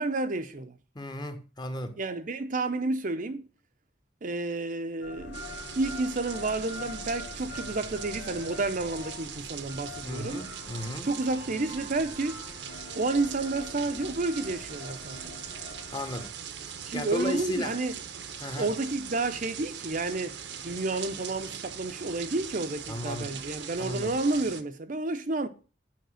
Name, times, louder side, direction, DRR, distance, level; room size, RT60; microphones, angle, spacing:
voice 1, 0.0-0.8 2.0-3.5 4.2-5.5 5.8-10.4 11.0-12.4 12.9-15.4 16.9-17.9 18.5-25.5, right 3 dB, 45° right, 0.7 m, -30 dB
voice 2, 0.9-2.0 10.0-11.1 15.9-16.3 16.9-17.7 18.4-18.7 22.9-23.3 23.8-24.1, left 1 dB, 25° left, 1.2 m, -34 dB
sound 1, 5.0-16.3, left 2 dB, 70° left, 1.2 m, -44 dB
sound 2, 5.3-24.6, right 8 dB, 70° right, 1.0 m, -41 dB
9.4 x 5.3 x 6.4 m
head